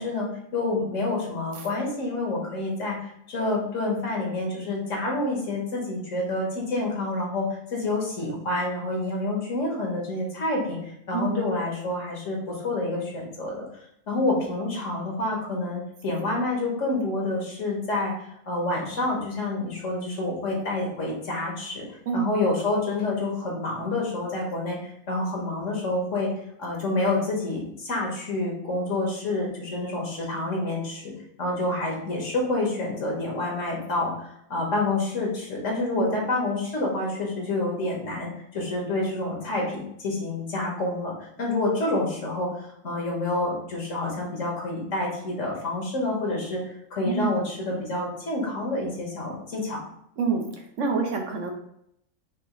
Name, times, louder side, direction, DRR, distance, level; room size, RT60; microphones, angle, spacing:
voice 1, 0.0-7.5 7.7-10.8 11.1-13.7 14.1-21.8 22.1-26.3 26.6-31.1 31.4-42.5 42.8-46.6 46.9-49.8, left 2 dB, 70° left, -1 dB, 1.6 m, -28 dB
voice 2, 11.1-11.5 22.1-22.3 35.9-36.3 47.0-47.4 50.2-50.5 50.8-51.5, right 4 dB, 70° right, 2 dB, 1.1 m, -27 dB
5.4 x 3.0 x 3.1 m, 0.73 s
omnidirectional pair, 1.4 m